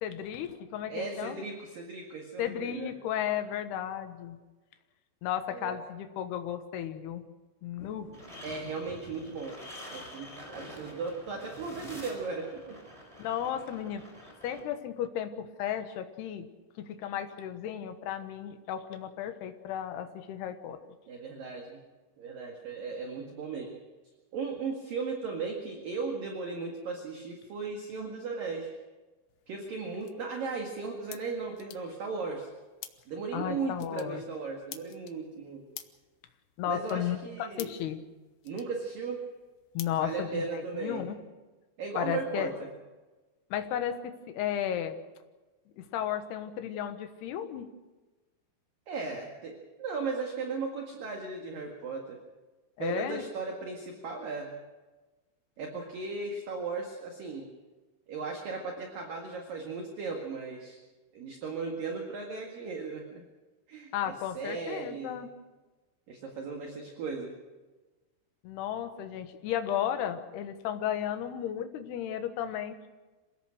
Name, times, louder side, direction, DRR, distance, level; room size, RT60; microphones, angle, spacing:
voice 1, 0.0-1.4 2.4-4.4 5.2-7.2 7.6-8.1 13.2-14.0 14.4-16.5 16.8-20.8 33.3-34.2 36.6-38.0 39.7-41.2 42.0-42.5 43.5-45.0 45.8-47.7 52.8-53.2 63.9-65.3 68.4-72.9, left 10 dB, 65° left, 7 dB, 2.8 m, -34 dB
voice 2, 0.9-3.0 5.5-5.8 8.4-9.6 9.9-12.8 21.1-21.8 22.2-23.8 24.3-28.7 29.5-32.5 33.1-35.7 36.7-37.7 38.4-39.3 39.9-41.1 41.8-42.7 48.9-52.2 52.8-54.5 55.6-57.5 58.1-60.8 61.1-63.2 63.7-65.3 66.1-67.3, right 4 dB, 55° right, 2 dB, 3.0 m, -36 dB
sound 1, 7.8-13.2, left 4 dB, 50° left, 3.2 m, -55 dB
sound 2, 8.1-14.6, equal, 5° right, 3.7 m, -47 dB
sound 3, 29.3-40.8, left 12 dB, 90° left, 2.1 m, -52 dB
27.0 x 17.5 x 6.5 m, 1.2 s
omnidirectional pair, 6.0 m